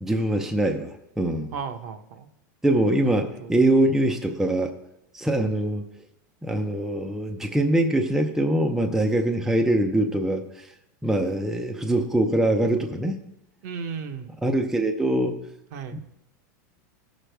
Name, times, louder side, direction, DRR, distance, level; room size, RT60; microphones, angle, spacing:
voice 1, 0.0-1.5 2.6-4.7 5.1-5.8 6.4-10.7 11.0-13.2 14.4-15.5 15.9-16.0, right 1 dB, 5° right, 4 dB, 0.6 m, -23 dB
voice 2, 1.5-2.3 3.0-3.5 13.6-14.3 15.7-16.0, right 6 dB, 60° right, 6 dB, 1.0 m, -35 dB
16.0 x 6.3 x 3.4 m, 0.86 s
supercardioid pair, 150°, 10 cm